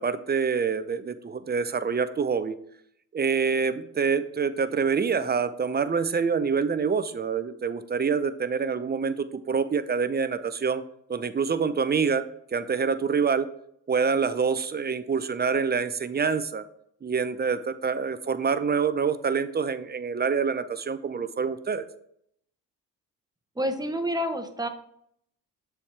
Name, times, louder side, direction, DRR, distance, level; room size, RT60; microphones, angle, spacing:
voice 1, 0.0-2.6 3.1-10.8 11.1-13.5 13.9-16.6 17.0-21.8, right 5 dB, 25° right, 12 dB, 0.5 m, -26 dB
voice 2, 23.6-24.7, equal, 10° right, 7 dB, 0.9 m, -28 dB
6.9 x 4.4 x 3.3 m, 0.71 s
supercardioid pair, 60°, 39 cm